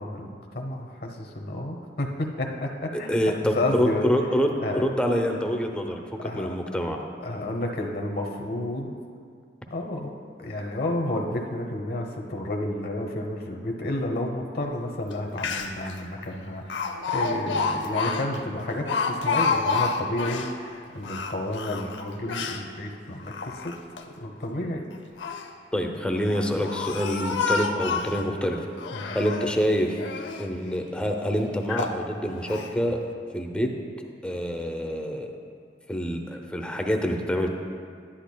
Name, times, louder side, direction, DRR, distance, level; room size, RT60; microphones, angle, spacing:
voice 1, 0.0-4.0 4.6-4.8 6.2-6.6 7.2-8.9 9.7-10.1 10.4-23.7 24.0-24.8 28.9-29.2, left 1 dB, 60° left, 2 dB, 0.9 m, -31 dB
voice 2, 2.9-7.0 25.7-28.7 29.1-30.0 30.4-33.0 33.3-33.7 34.2-35.3 35.9-37.5, equal, 5° left, 2 dB, 0.6 m, -26 dB
Speech, 15.1-15.2 15.4-15.9 16.7-20.5 21.0-22.6 23.2-24.0 24.9-25.5 26.2-28.2 28.8-29.6 30.0-30.5 31.0-31.1 31.7-32.0 32.5-32.7, left 4 dB, 85° left, 0.6 m, -29 dB
11.0 x 10.0 x 2.2 m, 2.2 s
head